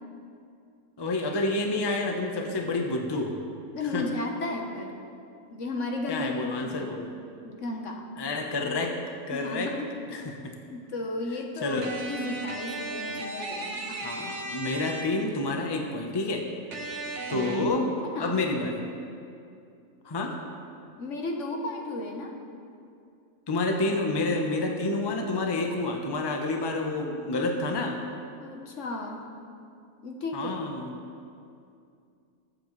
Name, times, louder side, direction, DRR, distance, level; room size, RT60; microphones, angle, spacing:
voice 1, 1.0-3.3 3.9-4.0 6.1-7.1 8.2-9.0 9.3-9.7 10.1-10.5 11.6-11.9 13.9-16.5 17.3-17.9 18.2-18.8 20.0-20.4 23.5-28.0 30.3-30.9, left 2 dB, 20° left, 2 dB, 0.8 m, -29 dB
voice 2, 3.7-4.9 5.5-6.9 7.4-8.0 9.3-9.9 10.1-10.3 10.7-14.0 17.3-18.4 21.0-22.3 28.4-29.3 30.0-30.7, left 2 dB, 60° left, 2 dB, 1.4 m, -34 dB
sound 1, 11.8-15.4 16.7-17.7, right 2 dB, 60° right, 1.3 m, -35 dB
21.5 x 7.7 x 3.2 m, 2.5 s
omnidirectional pair, 1.4 m